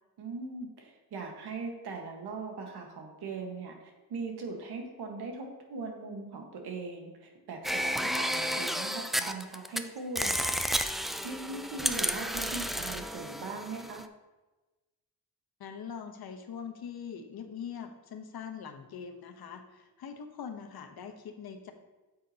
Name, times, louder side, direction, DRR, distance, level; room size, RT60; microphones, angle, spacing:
voice 1, 0.2-10.6 11.2-14.0, right 3 dB, 90° right, 2 dB, 1.5 m, -40 dB
sound 1, 7.6-9.8 10.2-14.0, equal, ahead, 0.3 m, -32 dB
voice 2, 15.6-21.7, left 7 dB, 70° left, 6 dB, 1.0 m, -42 dB
9.1 x 7.4 x 2.9 m, 1.1 s
cardioid pair, 95°, 38 cm